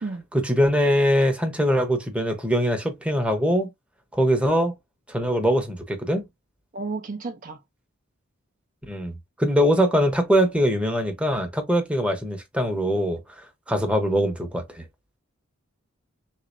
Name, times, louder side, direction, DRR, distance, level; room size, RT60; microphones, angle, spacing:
voice 1, 0.3-3.7 4.1-4.7 5.1-6.3 8.9-9.1 9.4-13.2 13.7-14.9, equal, 5° right, 0.8 m, -22 dB
voice 2, 6.7-7.6, right 3 dB, 40° right, 0.5 m, -32 dB
3.8 x 3.1 x 2.5 m
head